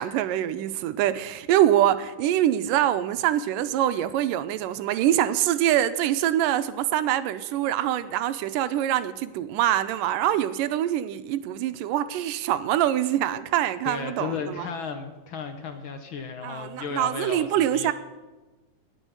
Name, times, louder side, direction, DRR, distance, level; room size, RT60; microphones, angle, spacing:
voice 1, 0.0-14.7 16.4-17.9, right 12 dB, 80° right, 2.3 m, -24 dB
voice 2, 13.8-17.9, left 5 dB, 70° left, 1.2 m, -34 dB
18.0 x 6.4 x 9.3 m
omnidirectional pair, 3.9 m